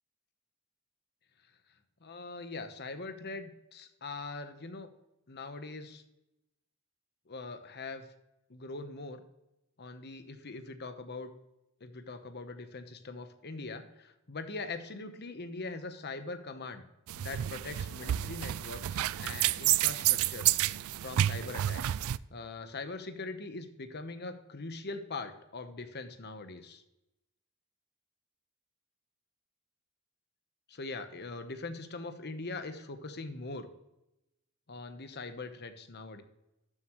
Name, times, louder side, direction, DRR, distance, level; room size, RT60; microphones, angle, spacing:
voice 1, 2.0-4.9 5.3-6.0 7.3-8.0 8.5-9.2 9.8-11.3 11.8-16.8 17.2-21.9 22.3-26.8 30.7-33.7 34.7-36.2, left 3 dB, 45° left, 9 dB, 1.0 m, -42 dB
sound 1, 17.1-22.2, right 13 dB, 65° right, 0.3 m, -30 dB
13.0 x 7.4 x 3.1 m, 0.91 s
head